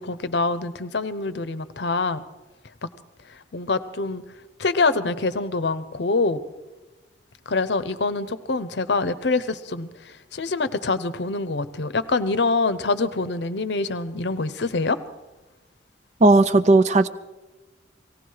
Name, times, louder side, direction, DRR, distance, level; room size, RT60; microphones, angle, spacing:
voice 1, 0.0-2.2 3.5-4.2 4.6-6.4 7.5-9.9 10.3-15.0, left 3 dB, 65° left, 13 dB, 0.8 m, -25 dB
voice 2, 16.2-17.1, right 2 dB, 40° right, 12 dB, 0.5 m, -15 dB
18.5 x 16.5 x 4.7 m, 1.1 s
head